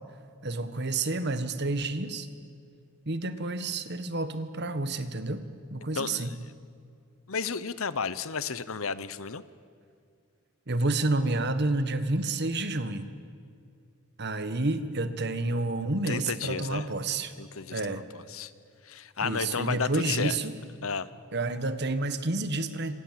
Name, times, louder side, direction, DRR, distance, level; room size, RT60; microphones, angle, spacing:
voice 1, 0.4-2.3 3.1-5.4 5.7-6.3 10.7-13.1 14.2-17.3 17.7-18.0 19.2-20.5 21.3-22.9, right 2 dB, 50° right, 11 dB, 1.5 m, -29 dB
voice 2, 5.9-6.3 7.3-9.4 16.1-16.9 17.4-18.5 18.8-20.4 20.8-21.1, left 5 dB, 70° left, 15 dB, 1.0 m, -32 dB
27.5 x 26.0 x 7.6 m, 2.3 s
head